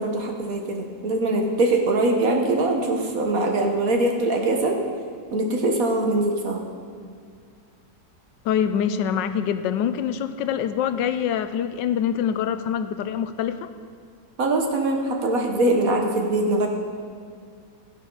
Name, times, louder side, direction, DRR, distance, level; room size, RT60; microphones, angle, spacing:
voice 1, 0.0-4.8 5.3-6.6 14.4-16.7, right 2 dB, 55° right, 2 dB, 1.6 m, -22 dB
voice 2, 8.4-13.7, left 8 dB, 90° left, 11 dB, 1.3 m, -25 dB
13.5 x 11.0 x 3.9 m, 2.1 s
omnidirectional pair, 1.9 m